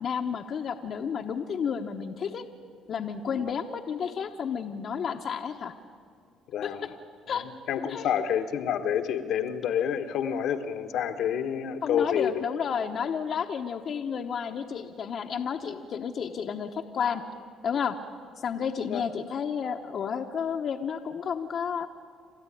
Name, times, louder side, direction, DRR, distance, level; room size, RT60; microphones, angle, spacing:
voice 1, 0.0-2.4 2.9-5.7 6.6-6.7 7.3-7.4 7.9-8.1 11.8-17.2 17.6-18.0 18.4-21.9, left 7 dB, 55° left, 3 dB, 1.1 m, -31 dB
voice 2, 6.5-6.9 7.3-12.4 18.8-19.0, left 8 dB, 70° left, 7 dB, 1.3 m, -28 dB
28.5 x 12.5 x 9.9 m, 2.2 s
supercardioid pair, 80°, 0 cm